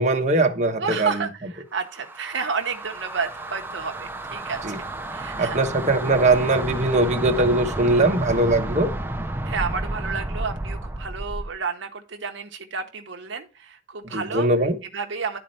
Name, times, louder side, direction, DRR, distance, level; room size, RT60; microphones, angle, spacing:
voice 1, 0.0-1.2 4.6-4.8 5.4-8.9 14.0-14.8, right 2 dB, 35° right, 1.2 m, -21 dB
voice 2, 0.8-4.8 5.1-5.6 9.5-14.5 14.9-15.4, right 5 dB, 65° right, 0.9 m, -31 dB
sound 1, 1.8-11.6, right 1 dB, 10° right, 0.7 m, -31 dB
11.0 x 4.3 x 5.4 m
head